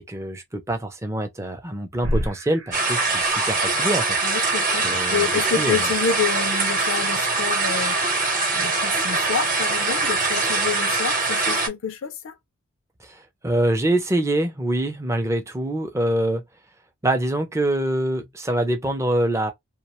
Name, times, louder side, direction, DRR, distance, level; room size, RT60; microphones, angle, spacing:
voice 1, 0.0-4.2 4.8-5.3 5.6-5.9 13.0-16.4 17.0-19.5, right 1 dB, 15° right, 0.5 m, -25 dB
sound 1, 2.0-9.0, equal, 80° right, 0.9 m, -35 dB
sound 2, 2.7-11.7, right 3 dB, 40° right, 0.9 m, -23 dB
voice 2, 4.2-8.0 8.5-12.3, left 6 dB, 65° left, 0.4 m, -28 dB
2.4 x 2.2 x 2.9 m
head